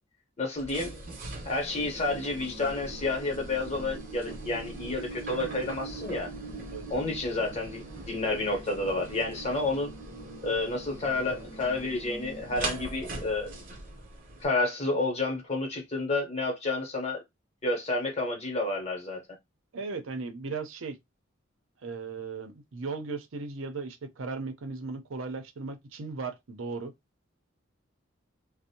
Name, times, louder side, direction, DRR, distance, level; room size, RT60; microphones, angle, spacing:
voice 1, 0.4-1.0 1.4-6.3 6.9-9.9 10.4-13.5 14.4-17.2 17.6-19.2, left 2 dB, 35° left, 0.8 m, -30 dB
sound 1, 0.6-14.5, right 2 dB, 40° right, 0.8 m, -41 dB
voice 2, 19.7-21.0 21.8-26.9, right 4 dB, 85° right, 0.6 m, -37 dB
2.5 x 2.0 x 2.8 m
head